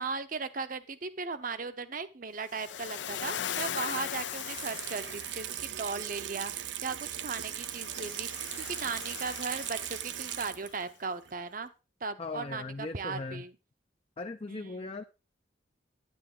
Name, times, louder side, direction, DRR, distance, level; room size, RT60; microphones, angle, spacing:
voice 1, 0.0-11.7 12.0-13.5 14.5-14.9, right 4 dB, 45° right, 0.9 m, -37 dB
Waves surf, 2.5-5.7 7.5-10.6, left 9 dB, 80° left, 0.6 m, -39 dB
Water tap faucet / Sink (filling or washing), 4.2-10.9 11.3-11.4, right 11 dB, 80° right, 0.7 m, -39 dB
voice 2, 12.2-13.4 14.2-15.0, left 3 dB, 35° left, 0.5 m, -38 dB
9.8 x 9.7 x 3.8 m
head